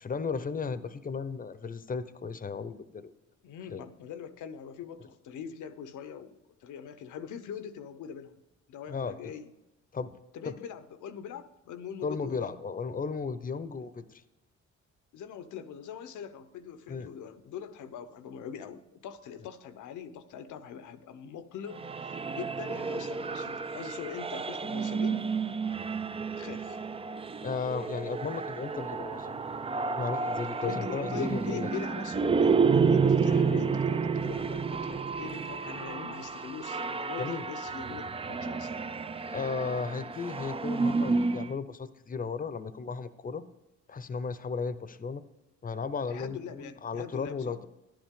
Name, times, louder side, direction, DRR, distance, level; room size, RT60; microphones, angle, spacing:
voice 1, 0.0-3.1 3.7-3.8 8.9-9.1 9.9-10.1 10.4-10.6 12.0-14.2 16.9-17.1 27.4-29.4 29.9-31.7 37.2-37.4 39.3-43.4 43.9-45.2 45.6-47.7, left 5 dB, 30° left, 13 dB, 0.7 m, -35 dB
voice 2, 3.4-8.4 8.7-9.5 10.3-12.5 13.8-13.9 15.1-25.3 26.4-26.8 30.6-38.8 46.1-47.6, left 7 dB, 75° left, 10 dB, 0.9 m, -42 dB
sound 1, 21.7-41.5, right 5 dB, 20° right, 0.4 m, -30 dB
11.5 x 10.5 x 3.7 m, 0.98 s
cardioid pair, 90°, 30 cm